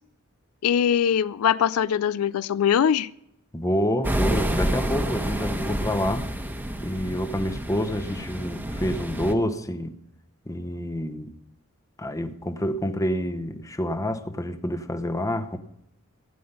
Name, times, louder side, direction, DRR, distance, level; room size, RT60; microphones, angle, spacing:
voice 1, 0.6-3.1, left 8 dB, 80° left, 0.4 m, -22 dB
voice 2, 3.5-6.3 6.8-9.9 10.5-11.3 12.0-15.6, equal, 15° left, 0.9 m, -28 dB
sound 1, 4.0-9.3, equal, 10° right, 1.1 m, -28 dB
16.0 x 9.5 x 5.5 m
head